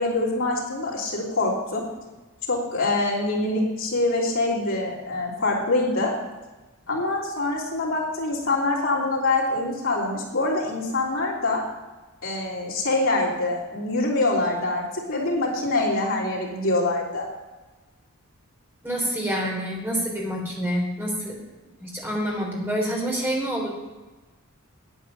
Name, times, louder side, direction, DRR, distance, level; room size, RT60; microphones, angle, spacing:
voice 1, 0.0-1.9 2.5-6.1 6.9-11.6 12.2-17.3, left 2 dB, 65° left, -4 dB, 3.4 m, -25 dB
voice 2, 18.8-21.3 21.8-23.7, equal, 10° right, -2 dB, 3.4 m, -27 dB
9.7 x 8.6 x 7.0 m, 1.2 s
head